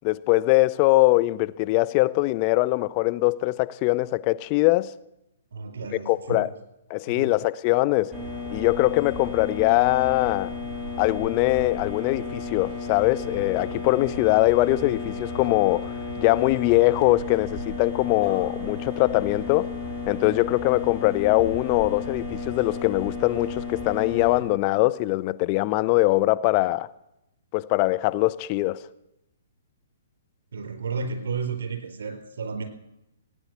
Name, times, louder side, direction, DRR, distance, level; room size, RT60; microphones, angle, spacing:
voice 1, 0.0-4.9 6.1-6.5 6.9-8.1 8.5-10.5 11.0-19.7 20.1-26.9 27.5-28.8, left 19 dB, 35° left, 0.6 m, -22 dB
voice 2, 5.5-6.5 7.1-7.3 30.5-32.6, right 5 dB, 65° right, 4.1 m, -32 dB
sound 1, 8.1-24.4, left 3 dB, 5° right, 4.3 m, -33 dB
17.0 x 9.6 x 8.1 m
figure-of-eight pair, 125°, 0 cm